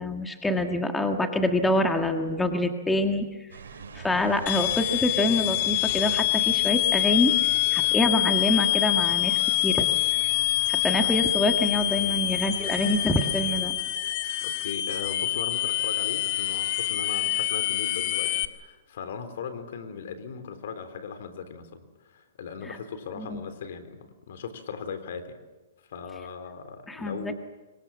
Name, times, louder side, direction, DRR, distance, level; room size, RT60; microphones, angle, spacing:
voice 1, 0.0-3.3 3.9-9.9 10.7-13.7 22.6-22.8 23.2-23.4 26.9-27.3, left 1 dB, 5° left, 5 dB, 1.7 m, -26 dB
sound 1, 3.5-13.7, right 5 dB, 85° right, 4.7 m, -43 dB
sound 2, 4.5-18.5, left 17 dB, 45° left, 1.7 m, -26 dB
voice 2, 14.4-25.4 25.9-27.3, left 6 dB, 65° left, 9 dB, 3.7 m, -38 dB
26.0 x 23.5 x 7.4 m, 1.1 s
hypercardioid pair, 140°, 0 cm